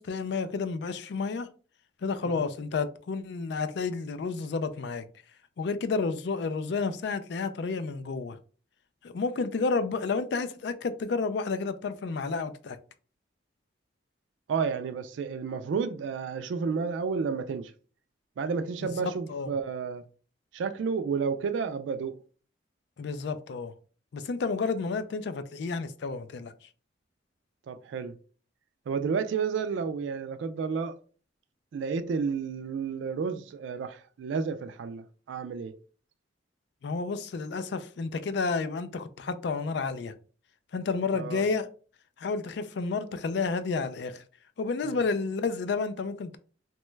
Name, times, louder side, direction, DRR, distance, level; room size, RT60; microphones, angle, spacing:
voice 1, 0.0-1.5 2.0-5.0 5.6-8.4 9.0-12.8 18.8-19.5 23.0-23.7 24.1-26.5 36.8-40.1 40.7-41.7 42.2-44.2 44.6-46.4, left 4 dB, 65° left, 0.4 m, -31 dB
voice 2, 14.5-17.7 18.4-20.0 20.5-22.2 27.7-28.1 28.9-30.9 31.7-35.7 41.1-41.4 44.8-45.0, right 5 dB, 85° right, 0.3 m, -31 dB
3.0 x 2.2 x 3.1 m
head